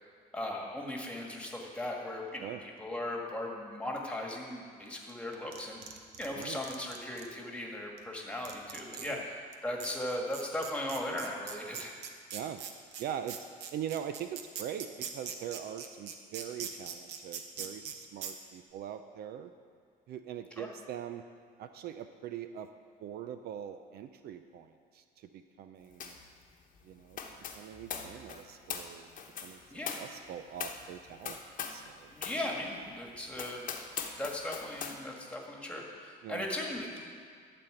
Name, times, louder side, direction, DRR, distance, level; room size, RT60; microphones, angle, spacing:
voice 1, 0.3-2.5 2.8-5.8 6.2-9.2 9.6-12.0 20.6-20.7 29.7-30.0 32.1-33.6 34.2-37.0, left 1 dB, 5° left, -1 dB, 1.8 m, -37 dB
sound 1, 5.1-7.3 8.0-8.1 8.4-9.1 9.5-9.6 9.8-17.9 18.2-18.3, right 8 dB, 85° right, 0.9 m, -41 dB
voice 2, 12.3-12.6 13.0-13.4 13.7-19.5 20.1-21.3 21.6-22.7 23.0-26.1 26.8-27.2 27.5-29.1 29.4-29.6 30.0-31.4 31.7-32.5 36.2-36.4, right 9 dB, 70° right, 9 dB, 0.5 m, -42 dB
sound 2, 26.0-26.3 26.5-31.9 32.2-32.4 32.9-33.0 33.3-35.0, left 7 dB, 50° left, 1.0 m, -41 dB
12.0 x 4.3 x 7.8 m, 2.1 s
cardioid pair, 110°, 17 cm